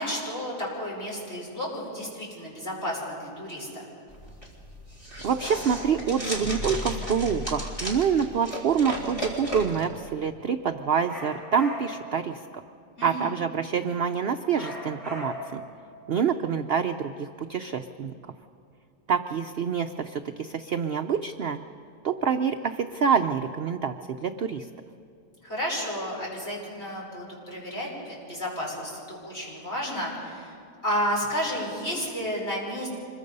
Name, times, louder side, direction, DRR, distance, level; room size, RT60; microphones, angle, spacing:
voice 1, 0.0-3.8 13.0-13.3 25.4-30.6 30.8-32.9, equal, 40° left, -3 dB, 5.8 m, -32 dB
sound 1, 4.1-9.8, equal, 20° left, 3.7 m, -35 dB
voice 2, 5.2-12.4 13.0-15.6 16.1-18.1 19.1-21.6 22.0-23.9 24.2-24.7, right 7 dB, 65° right, 7 dB, 0.6 m, -26 dB
sound 2, 11.1-12.1 14.5-15.6, left 2 dB, ahead, 7.7 m, -38 dB
25.5 x 22.0 x 5.4 m, 2.5 s
omnidirectional pair, 1.8 m